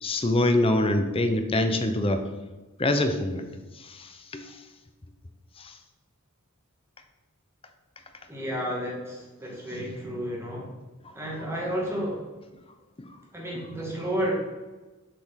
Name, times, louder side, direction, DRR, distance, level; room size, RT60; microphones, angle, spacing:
voice 1, 0.0-2.2 2.8-3.5 3.8-4.6 5.6-5.8 13.0-13.1, left 1 dB, 25° left, 7 dB, 0.7 m, -25 dB
voice 2, 8.3-10.7 11.1-12.2 13.3-14.3, equal, 10° right, -3 dB, 2.2 m, -31 dB
7.3 x 5.1 x 5.8 m, 1.2 s
head